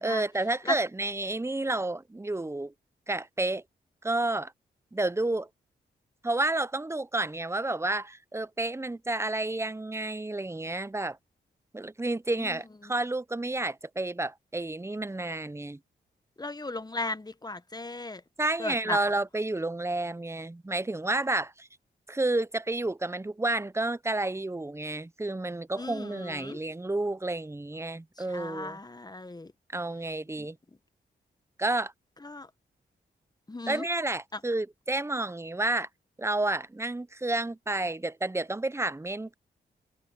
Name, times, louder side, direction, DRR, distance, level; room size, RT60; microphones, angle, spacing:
voice 1, 0.0-2.7 3.1-3.6 4.0-4.5 4.9-5.5 6.2-11.2 11.7-15.8 18.4-21.7 22.1-28.8 29.7-30.6 31.6-31.9 33.7-35.9 36.2-39.3, right 2 dB, 15° right, 0.8 m, -30 dB
voice 2, 16.4-18.2 18.6-19.0 25.8-26.6 28.3-29.5 30.4-30.5 32.2-32.5 33.5-33.9, left 2 dB, 20° left, 1.1 m, -36 dB
supercardioid pair, 45°, 19 cm